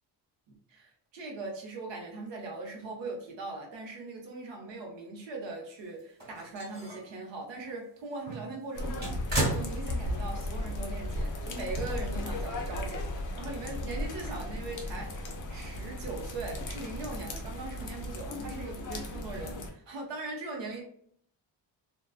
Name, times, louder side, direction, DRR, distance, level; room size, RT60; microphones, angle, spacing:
voice 1, 0.7-20.8, right 3 dB, 75° right, 0.8 m, -40 dB
sound 1, 6.0-7.1 7.6-7.7 8.2-10.4 10.6-10.7 12.0-12.1, right 1 dB, 25° right, 1.3 m, -34 dB
sound 2, 8.7-19.7, left 1 dB, 45° left, 0.5 m, -36 dB
2.4 x 2.2 x 2.3 m
cardioid pair, 130°, 44 cm